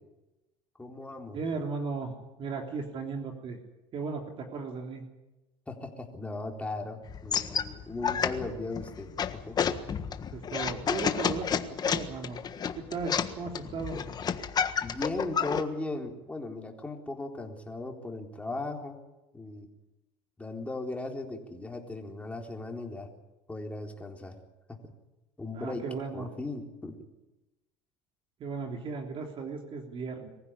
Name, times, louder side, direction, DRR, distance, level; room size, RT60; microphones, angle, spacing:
voice 1, 0.8-1.4 5.7-9.1 9.5-9.7 14.8-19.0 19.3-19.7 20.4-23.1 23.5-24.4 25.4-25.8 26.1-27.0, left 2 dB, 10° left, 2 dB, 3.9 m, -37 dB
voice 2, 1.3-2.1 2.4-3.6 3.9-5.0 10.3-12.4 12.8-14.0 25.5-26.3 28.4-30.3, right 4 dB, 45° right, 3 dB, 3.3 m, -36 dB
sound 1, 7.1-15.6, left 7 dB, 35° left, 1.5 m, -31 dB
23.5 x 15.5 x 9.8 m, 1.0 s
supercardioid pair, 115°, 12 cm